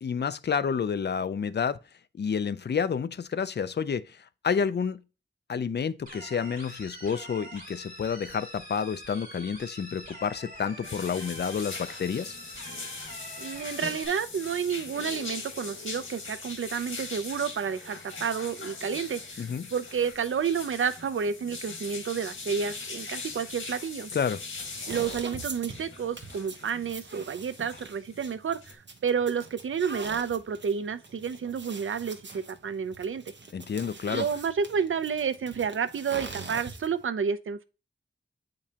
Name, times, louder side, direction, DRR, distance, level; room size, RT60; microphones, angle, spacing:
voice 1, 0.0-1.8 2.2-5.0 5.5-12.4 19.4-19.7 24.1-24.4 33.5-34.3, left 6 dB, 55° left, 0.4 m, -29 dB
sound 1, 6.1-14.1, equal, 45° right, 2.7 m, -45 dB
sound 2, 10.8-28.7, left 3 dB, 90° left, 1.6 m, -41 dB
voice 2, 13.4-24.1 24.9-28.6 29.0-33.2 34.1-37.6, right 6 dB, 90° right, 0.5 m, -30 dB
sound 3, 24.6-37.1, right 3 dB, 65° right, 1.0 m, -43 dB
8.3 x 5.2 x 2.8 m
wide cardioid pair, 75°, 20 cm